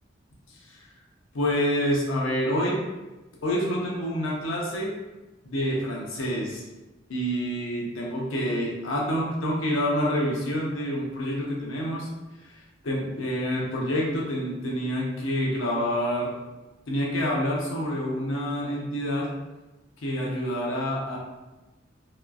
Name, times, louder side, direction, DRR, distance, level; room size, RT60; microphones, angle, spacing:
voice 1, 1.3-2.8 3.4-4.9 5.4-6.6 7.1-12.1 12.8-16.3 16.9-19.3 20.0-21.2, equal, 85° left, -3 dB, 0.7 m, -27 dB
2.9 x 2.4 x 2.2 m, 1.1 s
head